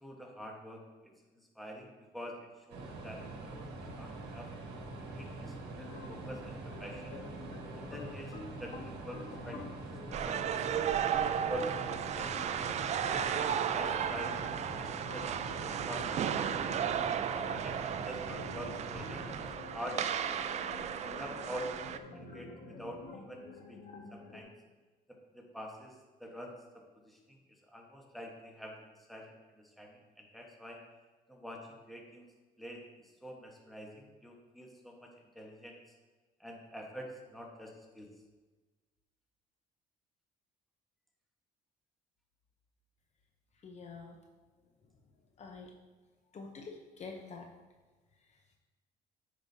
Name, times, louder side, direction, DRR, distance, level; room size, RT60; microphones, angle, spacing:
voice 1, 0.0-3.7 4.0-4.5 5.0-7.1 7.7-9.6 10.1-10.7 11.3-12.5 12.9-15.3 15.6-16.9 17.3-19.4 19.7-20.4 21.0-23.4 23.7-23.8 24.1-24.5 25.1-27.4 27.6-28.8 29.1-30.8 31.3-32.3 32.6-32.8 33.2-35.8 36.4-38.1, equal, ahead, 0 dB, 1.2 m, -46 dB
sound 1, 2.7-19.5, right 2 dB, 90° right, 1.1 m, -44 dB
sound 2, 5.7-24.4, left 3 dB, 75° left, 1.3 m, -49 dB
sound 3, 10.1-22.0, right 9 dB, 40° right, 0.4 m, -34 dB
voice 2, 43.6-44.2 45.4-45.7 46.3-47.4, left 4 dB, 40° left, 2 dB, 0.8 m, -46 dB
10.0 x 5.0 x 2.8 m, 1.3 s
cardioid pair, 110°, 17 cm